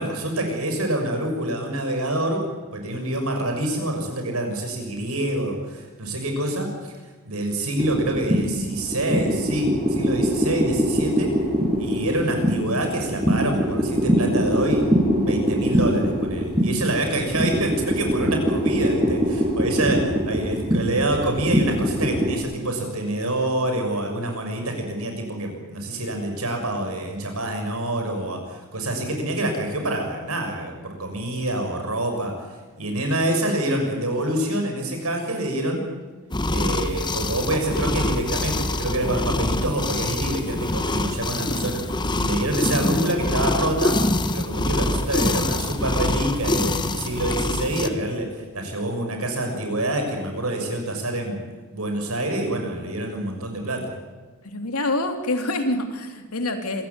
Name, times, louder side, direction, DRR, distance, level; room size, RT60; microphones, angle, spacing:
voice 1, 0.0-2.4 2.7-6.9 7.2-11.3 11.8-14.9 15.2-32.3 32.8-35.8 36.5-41.8 42.2-44.0 44.3-51.4 51.7-53.9, right 1 dB, 80° right, 4 dB, 6.8 m, -26 dB
sound 1, 7.8-22.4, equal, 25° right, 5.9 m, -23 dB
sound 2, 36.3-47.9, left 2 dB, 20° left, 1.2 m, -25 dB
voice 2, 54.4-56.9, left 2 dB, 90° left, 5 dB, 3.0 m, -26 dB
26.5 x 16.0 x 9.6 m, 1.3 s
head